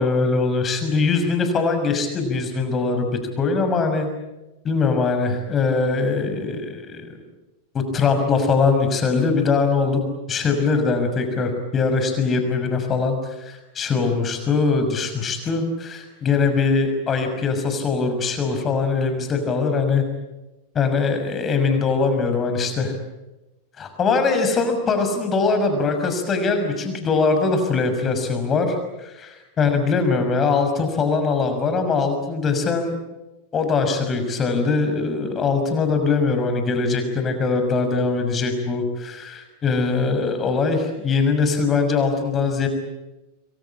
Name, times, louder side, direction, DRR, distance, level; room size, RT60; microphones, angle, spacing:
voice 1, 0.0-3.1 3.4-4.1 4.6-7.1 7.7-20.0 20.7-22.9 23.8-32.9 33.5-42.7, left 4 dB, 25° left, 7 dB, 6.0 m, -22 dB
28.5 x 23.0 x 8.9 m, 1.0 s
figure-of-eight pair, 90°, 0 cm